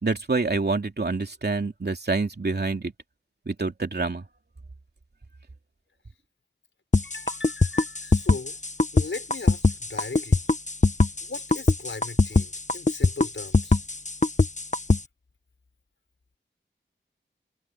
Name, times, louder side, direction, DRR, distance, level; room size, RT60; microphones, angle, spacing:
voice 1, 0.0-2.9 3.5-4.2, right 3 dB, 55° right, 2.8 m, -27 dB
sound 1, 6.9-15.0, left 3 dB, 35° left, 1.4 m, -21 dB
voice 2, 7.0-8.6 8.9-10.4 11.2-13.8, left 4 dB, 75° left, 4.5 m, -38 dB
wide cardioid pair, 55°, 20 cm